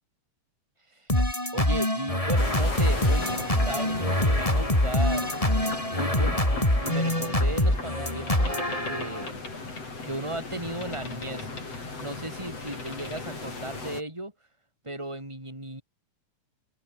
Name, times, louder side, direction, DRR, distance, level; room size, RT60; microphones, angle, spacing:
sound 1, 1.1-9.3, left 1 dB, 10° left, 5.7 m, -25 dB
voice 1, 1.5-6.4 6.8-9.5 10.0-14.3 14.8-15.8, right 1 dB, 10° right, 8.0 m, -36 dB
sound 2, 2.4-14.0, left 3 dB, 50° left, 7.5 m, -37 dB
open air
omnidirectional pair, 3.6 m